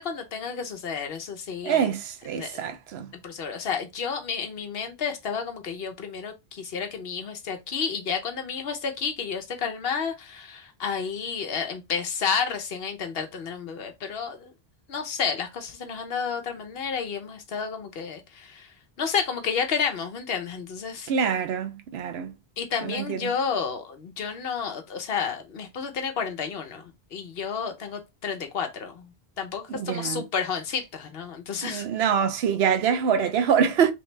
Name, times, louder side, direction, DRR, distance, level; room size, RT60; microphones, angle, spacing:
voice 1, 0.0-1.9 2.3-2.7 3.2-14.5 14.9-18.7 19.0-21.1 22.6-29.1 29.4-31.9, left 6 dB, 70° left, 1.0 m, -31 dB
voice 2, 1.6-3.1 21.1-22.3 22.8-23.3 29.7-30.2 31.6-33.9, right 7 dB, 80° right, 0.9 m, -25 dB
3.3 x 3.0 x 3.2 m
omnidirectional pair, 1.0 m